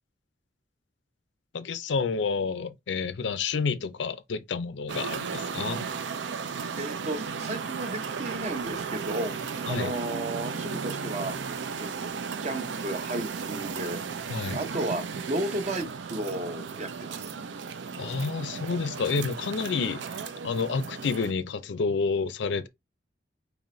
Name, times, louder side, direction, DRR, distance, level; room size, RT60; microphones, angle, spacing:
voice 1, 1.5-5.9 9.7-9.9 14.3-14.6 18.0-20.0 20.4-22.7, left 5 dB, 80° left, 0.5 m, -29 dB
sound 1, 4.9-21.3, right 5 dB, 85° right, 0.5 m, -35 dB
voice 2, 6.8-11.3 11.8-12.1 12.4-14.0 14.5-17.3, right 1 dB, 40° right, 0.6 m, -34 dB
3.9 x 3.0 x 3.1 m
head